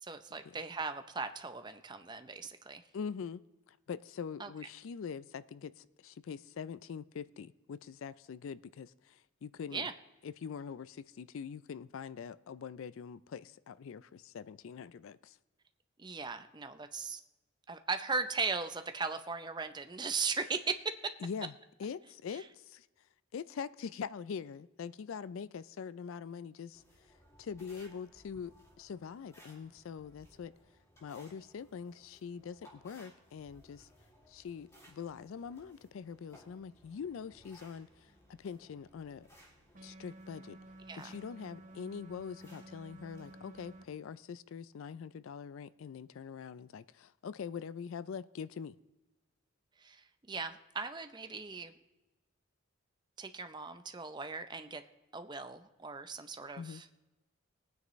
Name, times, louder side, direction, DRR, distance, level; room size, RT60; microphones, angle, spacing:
voice 1, 0.0-2.8 4.4-4.5 9.7-9.9 16.0-17.2 17.7-20.9 22.3-22.4 40.9-41.1 49.8-51.7 53.2-54.8 55.1-56.9, right 4 dB, 20° right, 0.5 m, -38 dB
voice 2, 2.9-9.9 10.2-15.4 21.2-21.5 21.8-22.9 23.3-26.8 27.4-30.5 31.0-33.9 34.3-39.3 39.8-40.6 41.0-48.7 56.6-56.8, left 6 dB, 70° left, 0.3 m, -43 dB
sound 1, 26.7-43.9, equal, 15° left, 2.3 m, -62 dB
sound 2, 39.7-43.8, right 2 dB, 35° right, 0.9 m, -53 dB
20.5 x 9.4 x 3.1 m
head